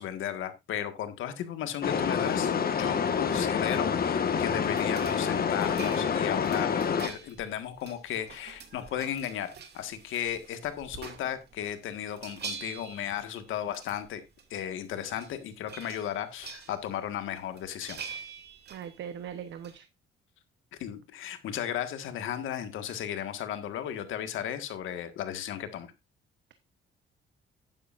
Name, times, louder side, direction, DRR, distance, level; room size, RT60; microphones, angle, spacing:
voice 1, 0.0-2.5 2.8-14.2 14.5-18.0 20.8-25.9, left 10 dB, 85° left, 9 dB, 1.7 m, -35 dB
sound 1, 1.8-7.1, left 6 dB, 50° left, 1.4 m, -27 dB
sound 2, 4.6-11.7 12.0-14.1 14.4-14.5 14.8-15.4 15.7-17.0 17.4-19.8, right 6 dB, 55° right, 2.4 m, -45 dB
voice 2, 18.7-19.9, right 8 dB, 70° right, 10 dB, 1.0 m, -40 dB
12.0 x 9.8 x 2.5 m, 0.22 s
cardioid pair, 90°, 20 cm